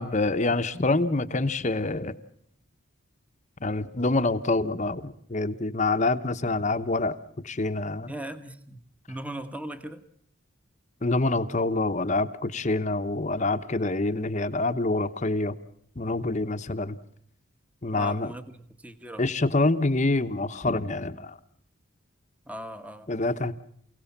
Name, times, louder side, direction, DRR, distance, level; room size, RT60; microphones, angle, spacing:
voice 1, 0.0-2.2 3.6-7.1 7.4-8.1 11.0-15.5 16.0-17.0 17.8-18.3 19.2-21.4 23.1-23.5, left 2 dB, 35° left, 11 dB, 0.9 m, -26 dB
voice 2, 8.1-8.8 9.1-10.0 17.9-19.3 22.5-23.1, right 1 dB, 5° right, 10 dB, 1.2 m, -38 dB
29.0 x 17.5 x 7.3 m, 0.69 s
head